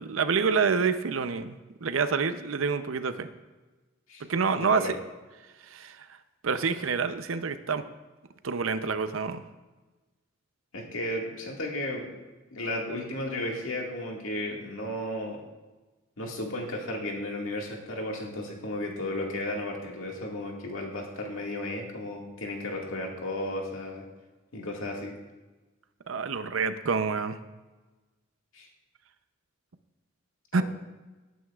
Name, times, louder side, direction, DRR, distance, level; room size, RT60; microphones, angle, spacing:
voice 1, 0.0-3.3 4.2-5.0 5.7-6.1 6.4-7.8 8.4-9.4 26.1-27.4 30.5-30.6, right 5 dB, 75° right, 11 dB, 0.6 m, -27 dB
voice 2, 4.5-5.0 10.7-12.1 12.5-15.4 16.2-24.0 24.5-25.1 28.5-28.7 30.5-30.6, left 1 dB, 85° left, -1 dB, 1.9 m, -34 dB
17.5 x 9.3 x 2.4 m, 1.2 s
head